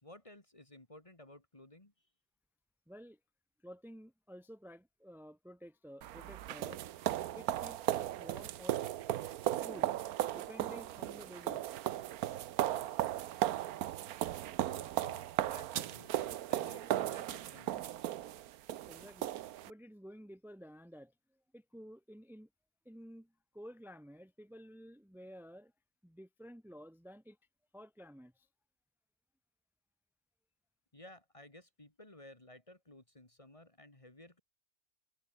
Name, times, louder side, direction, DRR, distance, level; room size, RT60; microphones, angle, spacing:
voice 1, 0.0-1.9 14.7-18.0 30.9-34.4, left 1 dB, 20° left, 2.1 m, -56 dB
voice 2, 2.9-3.2 3.6-6.9 7.4-8.8 9.6-10.0 10.3-11.7 18.9-21.1 21.5-22.5 22.8-25.7 26.0-27.4 27.7-28.5, equal, ahead, 1.6 m, -52 dB
sound 1, 6.0-19.7, right 12 dB, 80° right, 1.2 m, -36 dB
omnidirectional pair, 1.6 m